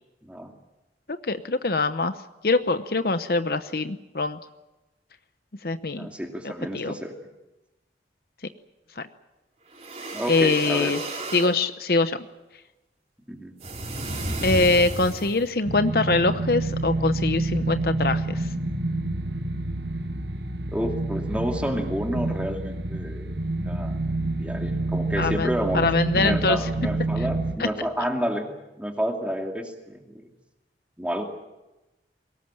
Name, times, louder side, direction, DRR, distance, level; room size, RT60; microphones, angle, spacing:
voice 1, 0.2-0.5 5.9-7.1 10.1-10.9 13.3-13.5 20.7-23.3 23.6-24.0 24.4-25.9 26.1-30.3 31.0-31.2, equal, 5° right, 3 dB, 2.6 m, -30 dB
voice 2, 1.1-2.1 2.4-4.4 5.6-6.1 6.4-6.9 9.0-9.1 10.3-11.0 11.3-12.3 14.4-18.5 25.2-26.6 27.6-27.7, left 3 dB, 55° left, 11 dB, 0.9 m, -23 dB
sound 1, 9.7-11.5 13.6-15.5, right 1 dB, 35° right, 4.0 m, -32 dB
sound 2, 15.6-27.6, right 2 dB, 80° right, 1.6 m, -28 dB
22.5 x 19.0 x 8.9 m, 1.0 s
head